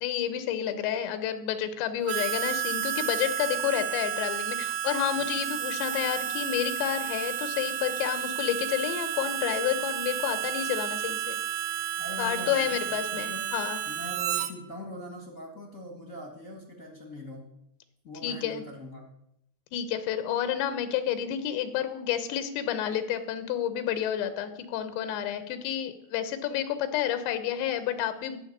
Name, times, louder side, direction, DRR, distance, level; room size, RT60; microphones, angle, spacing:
voice 1, 0.0-11.4 12.2-13.8 18.2-18.6 19.7-28.4, left 10 dB, 90° left, 11 dB, 3.3 m, -30 dB
Harmonica, 2.1-14.5, right 10 dB, 75° right, 2.2 m, -31 dB
voice 2, 12.0-17.5 18.0-19.1, left 1 dB, 45° left, 1 dB, 0.9 m, -42 dB
12.0 x 6.6 x 9.7 m, 0.78 s
omnidirectional pair, 4.9 m